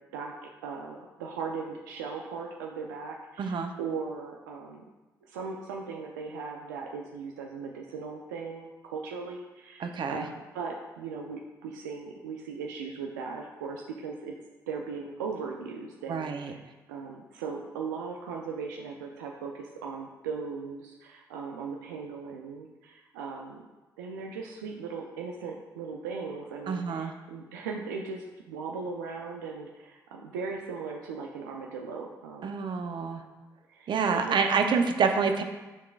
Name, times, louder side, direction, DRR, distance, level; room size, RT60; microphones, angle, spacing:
voice 1, 0.1-4.8 5.2-14.3 14.7-16.6 16.9-23.6 24.0-32.6 33.7-34.4, right 5 dB, 90° right, 0 dB, 0.4 m, -38 dB
voice 2, 3.4-3.7 9.8-10.3 16.1-16.5 26.7-27.1 32.4-33.2 33.9-35.4, right 5 dB, 55° right, 5 dB, 0.7 m, -27 dB
10.5 x 3.7 x 2.4 m, 1.1 s
hypercardioid pair, 45°, 9 cm